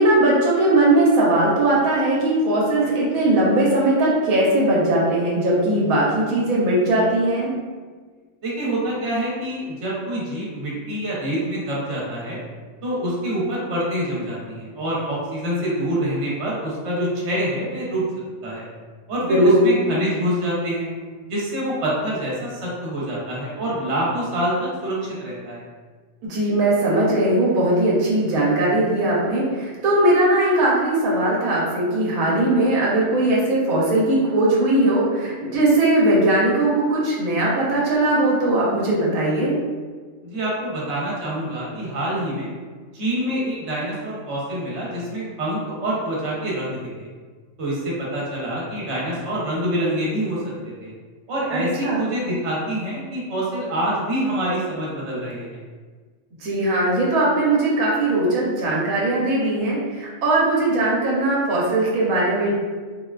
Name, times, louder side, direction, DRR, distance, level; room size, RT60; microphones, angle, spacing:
voice 1, 0.0-7.5 19.2-19.8 26.2-39.6 51.5-52.1 56.4-62.5, right 1 dB, 85° right, -5 dB, 1.1 m, -19 dB
voice 2, 8.4-12.4 12.8-18.1 18.4-18.7 19.1-20.9 21.3-25.6 40.2-42.5 42.9-47.1 47.6-50.4 50.8-50.9 51.3-55.6, right 1 dB, 60° right, -5 dB, 1.1 m, -26 dB
3.6 x 2.2 x 2.3 m, 1.5 s
omnidirectional pair, 1.4 m